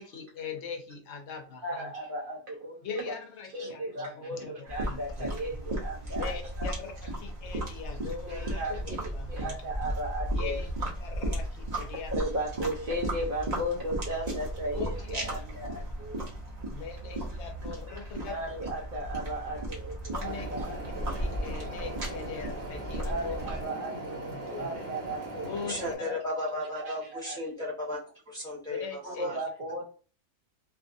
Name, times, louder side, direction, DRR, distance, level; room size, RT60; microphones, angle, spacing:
voice 1, 0.0-1.9 2.8-5.3 6.2-9.6 10.3-10.7 11.0-12.1 14.7-15.4 16.7-18.4 20.1-20.5 21.2-23.4 24.3-24.7 25.4-26.2 28.7-29.3, left 6 dB, 65° left, 0.7 m, -41 dB
voice 2, 1.6-3.2 3.5-6.7 8.3-10.6 12.1-16.2 17.9-18.0 18.3-21.1 23.1-25.7 26.0-26.2 26.6-27.7 29.0-29.8, right 1 dB, 90° right, 0.4 m, -36 dB
sound 1, 4.7-23.7, right 1 dB, 35° right, 0.7 m, -35 dB
sound 2, 20.2-26.0, right 1 dB, 60° right, 1.1 m, -40 dB
voice 3, 25.7-28.0 28.3-29.4, left 1 dB, 5° left, 0.9 m, -35 dB
2.6 x 2.5 x 2.5 m
omnidirectional pair, 1.6 m